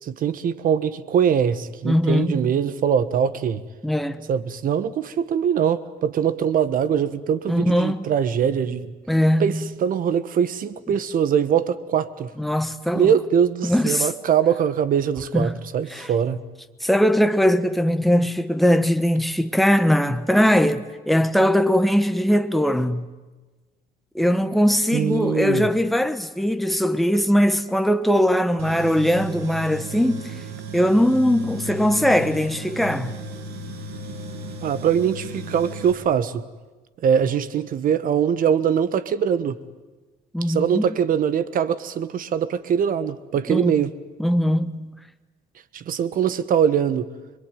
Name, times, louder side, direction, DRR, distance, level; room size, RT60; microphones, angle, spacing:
voice 1, 0.0-3.6 4.3-8.9 9.4-12.3 12.9-16.4 24.9-25.7 34.6-36.4 37.0-39.6 40.4-43.9 45.7-47.1, right 8 dB, 55° right, 1.4 m, -22 dB
voice 2, 1.8-2.4 3.8-4.3 7.5-8.1 9.1-9.6 12.4-13.1 13.6-14.1 15.3-15.5 15.9-16.1 16.8-23.1 24.1-30.3 30.7-33.1 40.3-40.8 43.5-43.7 44.2-44.8, equal, ahead, 1.2 m, -20 dB
Tools, 28.6-35.9, right 1 dB, 75° right, 3.2 m, -35 dB
26.0 x 22.5 x 9.2 m
cardioid pair, 110°, 17 cm